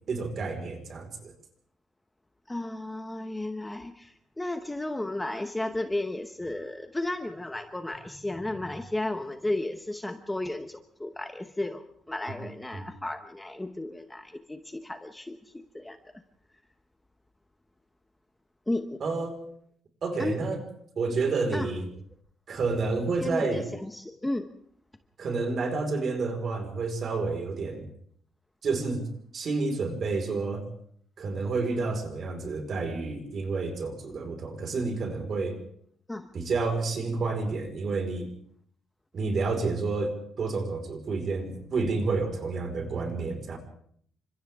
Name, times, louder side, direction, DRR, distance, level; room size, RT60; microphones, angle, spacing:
voice 1, 0.1-1.3 12.4-12.8 19.0-19.4 20.0-20.6 20.9-21.8 22.5-23.7 25.2-27.9 28.6-29.1 29.3-30.6 31.2-35.6 36.3-38.3 39.1-43.6, right 3 dB, 40° right, 4 dB, 4.8 m, -30 dB
voice 2, 2.5-16.0 18.7-19.0 20.2-20.4 21.5-21.7 23.2-24.5 36.1-36.3, left 1 dB, 10° left, 6 dB, 1.0 m, -34 dB
29.5 x 26.0 x 3.6 m, 0.62 s
cardioid pair, 175°, 0 cm